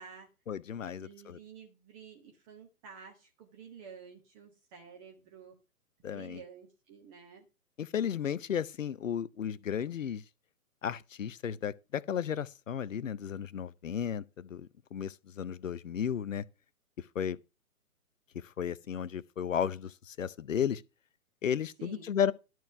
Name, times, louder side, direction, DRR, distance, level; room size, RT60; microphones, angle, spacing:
voice 1, 0.5-1.4 6.0-6.4 7.8-10.2 10.8-16.4 17.1-17.4 18.3-20.8 21.4-22.3, left 8 dB, 60° left, 0.7 m, -34 dB
voice 2, 1.0-5.5 6.1-7.4 21.8-22.0, right 6 dB, 25° right, 1.5 m, -51 dB
12.0 x 4.6 x 6.7 m
figure-of-eight pair, 130°, 44 cm